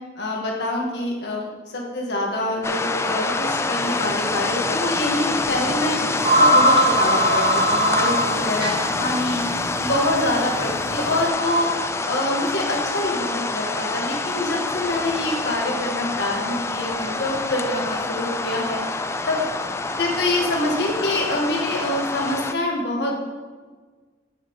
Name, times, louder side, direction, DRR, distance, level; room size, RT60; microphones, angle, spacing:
voice 1, 0.2-6.0 6.3-9.4 9.8-11.7 12.1-18.8 19.3-19.4 20.0-23.2, left 1 dB, 65° left, -1 dB, 1.7 m, -25 dB
sound 1, 2.6-22.5, left 3 dB, 15° left, 0.3 m, -26 dB
sound 2, 3.9-4.1 4.4-4.5 5.7-5.8 6.0-11.3, equal, 30° right, 0.6 m, -21 dB
8.8 x 8.6 x 3.2 m, 1.4 s
head